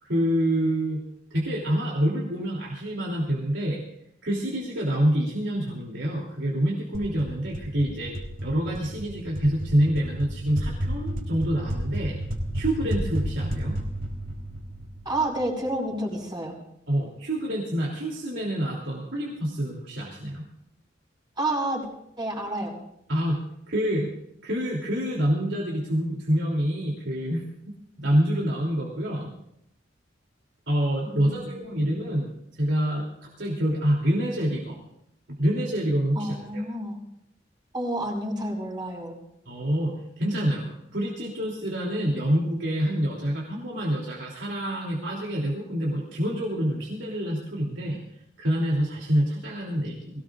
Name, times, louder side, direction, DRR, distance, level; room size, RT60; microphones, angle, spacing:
voice 1, 0.0-1.0 1.3-3.8 4.2-8.1 8.4-12.2 12.5-13.7 16.9-20.4 23.1-23.4 23.7-24.1 24.4-27.4 28.0-29.3 30.7-32.3 32.5-34.8 35.4-36.6 39.4-39.9 40.2-48.0 48.4-50.2, equal, 85° right, -3 dB, 3.2 m, -26 dB
sound 1, 6.9-15.6, equal, 50° right, 3.8 m, -32 dB
voice 2, 15.1-16.6 21.4-21.9 22.2-22.8 31.1-32.0 36.2-37.0 37.7-39.2, right 1 dB, 25° right, -1 dB, 5.3 m, -30 dB
22.5 x 18.0 x 2.6 m, 0.77 s
head